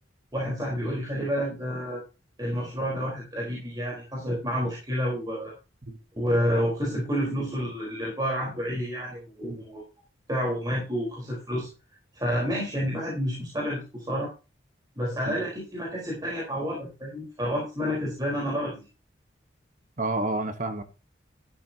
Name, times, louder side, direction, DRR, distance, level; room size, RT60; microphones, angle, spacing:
voice 1, 0.3-2.0 2.4-5.5 6.2-9.8 10.3-11.7 12.1-14.3 15.0-18.9, equal, 20° right, 4.1 m, -29 dB
voice 2, 20.0-20.8, right 2 dB, 40° right, 1.2 m, -30 dB
13.0 x 12.0 x 2.8 m
head